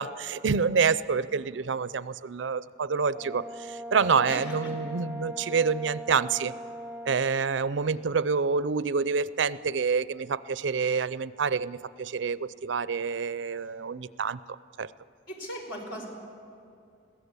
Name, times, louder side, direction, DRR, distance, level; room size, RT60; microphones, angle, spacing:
voice 1, 0.0-6.5 7.1-14.9, right 5 dB, 75° right, 17 dB, 0.5 m, -27 dB
Brass instrument, 3.1-7.2, right 1 dB, 10° right, 0.4 m, -40 dB
voice 2, 4.2-4.7 15.3-16.1, equal, 75° left, 1 dB, 4.6 m, -38 dB
22.0 x 16.0 x 8.3 m, 2.4 s
head